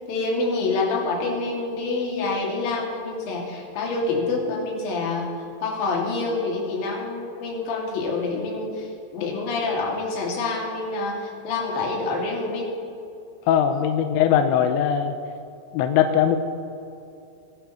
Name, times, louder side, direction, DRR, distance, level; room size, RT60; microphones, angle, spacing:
voice 1, 0.1-5.3 5.6-12.7 13.7-13.9, left 3 dB, 50° left, -3 dB, 3.6 m, -27 dB
voice 2, 13.5-15.2 15.7-16.4, left 9 dB, 85° left, 6 dB, 2.7 m, -20 dB
23.0 x 11.5 x 3.1 m, 2.6 s
omnidirectional pair, 5.8 m